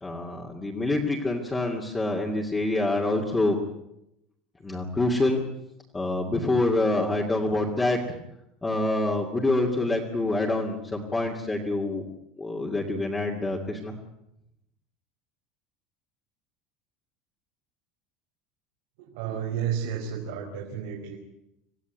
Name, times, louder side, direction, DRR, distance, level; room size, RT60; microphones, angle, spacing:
voice 1, 0.0-3.6 4.6-5.4 5.9-8.0 8.6-12.0 12.4-14.0, left 2 dB, 10° left, -2 dB, 2.5 m, -26 dB
voice 2, 19.0-21.2, right 8 dB, 80° right, 0 dB, 4.7 m, -32 dB
27.0 x 17.0 x 9.5 m, 0.85 s
cardioid pair, 170°, 0 cm